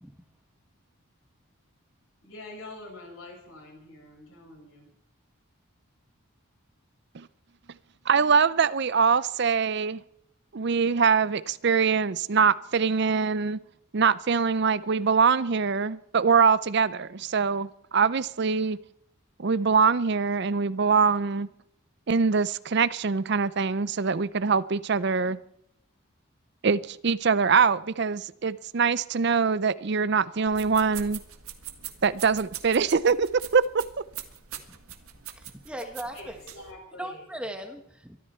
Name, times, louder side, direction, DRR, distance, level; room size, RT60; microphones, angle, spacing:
voice 1, 2.2-4.9 36.1-37.3, left 2 dB, 80° left, 7.8 m, -45 dB
voice 2, 8.1-10.0 10.5-13.6 13.9-18.8 19.4-21.5 22.1-25.4 26.6-31.2 32.0-33.8, right 5 dB, 50° right, 0.5 m, -23 dB
sound 1, 30.5-36.7, right 10 dB, 85° right, 1.7 m, -43 dB
voice 3, 35.3-36.4 37.0-38.2, right 1 dB, 5° right, 1.3 m, -38 dB
23.0 x 13.5 x 4.4 m
head